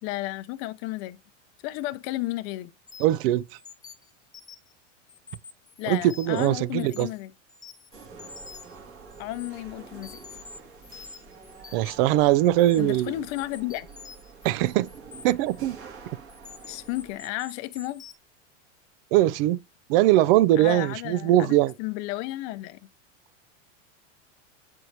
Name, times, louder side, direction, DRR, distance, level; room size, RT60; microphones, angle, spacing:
voice 1, 0.0-1.2 1.6-2.7 5.8-7.3 9.2-10.2 12.8-13.9 16.7-18.0 20.6-22.8, left 17 dB, 45° left, 0.7 m, -33 dB
sound 1, 2.9-3.2 3.6-4.7 5.1-6.5 6.9-7.2 7.5-8.8 9.1-9.5 10.0-12.1 12.6-12.8 13.4-15.6 16.3-18.2, left 5 dB, 10° left, 0.6 m, -46 dB
voice 2, 3.0-3.6 5.9-7.1 11.7-13.1 14.4-14.9 15.2-15.8 19.1-19.6 19.9-21.7, right 14 dB, 50° right, 0.5 m, -21 dB
sound 2, 7.9-17.2, right 5 dB, 35° right, 2.1 m, -47 dB
7.9 x 4.5 x 2.7 m
supercardioid pair, 125°, 37 cm